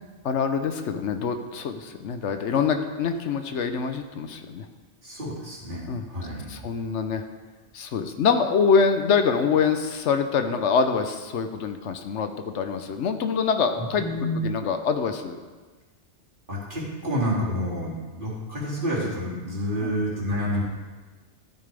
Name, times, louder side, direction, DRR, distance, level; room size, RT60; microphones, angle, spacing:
voice 1, 0.2-4.7 5.9-6.0 6.5-7.2 7.7-15.4 19.8-20.0, left 6 dB, 75° left, 7 dB, 1.0 m, -25 dB
voice 2, 5.0-6.6 13.8-14.4 16.5-20.6, equal, 45° right, -6 dB, 2.7 m, -29 dB
13.0 x 8.8 x 3.4 m, 1.3 s
omnidirectional pair, 1.2 m